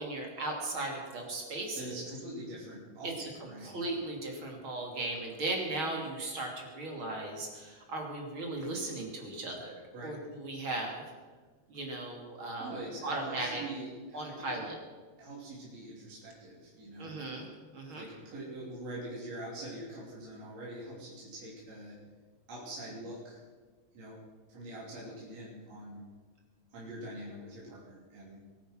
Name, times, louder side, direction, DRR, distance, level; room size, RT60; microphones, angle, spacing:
voice 1, 0.0-2.0 3.0-11.0 11.7-12.7 13.0-13.6 14.1-14.7 17.0-18.1, right 2 dB, 45° right, 1 dB, 3.4 m, -37 dB
voice 2, 1.8-3.7 9.9-10.2 12.6-14.6 15.2-17.1 17.9-22.0 22.5-23.4 23.9-24.2 24.5-26.0 26.7-28.4, right 1 dB, 60° right, -5 dB, 4.2 m, -44 dB
22.0 x 9.7 x 6.2 m, 1.4 s
omnidirectional pair, 3.3 m